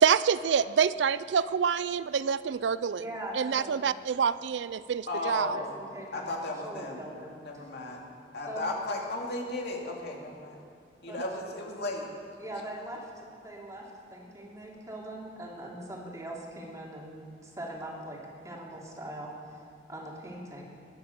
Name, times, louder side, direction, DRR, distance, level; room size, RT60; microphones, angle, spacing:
voice 1, 0.0-3.1 3.3-5.6, right 7 dB, 75° right, 16 dB, 0.4 m, -26 dB
voice 2, 3.0-3.8 5.1-6.3 6.6-7.4 8.5-8.6 11.1-11.2 12.4-13.0 13.4-18.2 18.4-19.3 19.9-20.6, right 1 dB, 20° right, -2 dB, 2.8 m, -41 dB
voice 3, 5.1-5.8 6.1-7.0 7.4-8.0 8.3-10.6 11.0-12.1, left 2 dB, 65° left, -1 dB, 2.7 m, -35 dB
22.0 x 9.5 x 6.8 m, 2.3 s
head